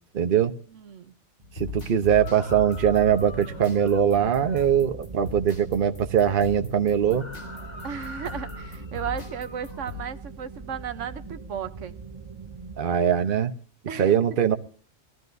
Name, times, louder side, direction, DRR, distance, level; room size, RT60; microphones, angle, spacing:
voice 1, 0.1-0.5 1.6-7.3 12.8-13.5 14.0-14.6, right 8 dB, 50° right, 1.1 m, -22 dB
voice 2, 0.7-1.1 7.8-12.0 13.9-14.2, right 8 dB, 85° right, 1.2 m, -35 dB
sound 1, 1.4-10.0, left 4 dB, 80° left, 3.2 m, -40 dB
sound 2, 2.2-4.7 7.1-9.9, left 1 dB, 35° left, 2.4 m, -44 dB
sound 3, 3.0-12.8, right 4 dB, 30° right, 0.7 m, -42 dB
21.0 x 14.0 x 2.7 m
omnidirectional pair, 1.2 m